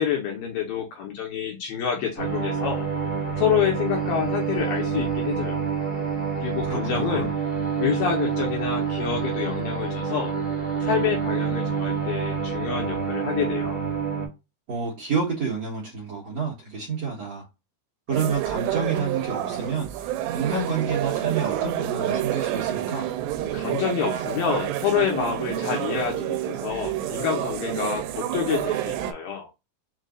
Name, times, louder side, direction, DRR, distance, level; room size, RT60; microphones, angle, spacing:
voice 1, 0.0-2.8 3.4-5.6 6.3-7.3 7.8-10.3 10.8-13.8 23.5-29.5, left 8 dB, 75° left, 2.4 m, -27 dB
sound 1, 2.2-14.3, right 6 dB, 10° left, 0.8 m, -27 dB
voice 2, 6.6-7.3 14.7-17.4 18.1-23.1, right 5 dB, 60° right, 1.8 m, -29 dB
sound 2, 18.1-29.1, right 12 dB, 90° right, 2.8 m, -28 dB
6.6 x 2.4 x 2.4 m
omnidirectional pair, 4.9 m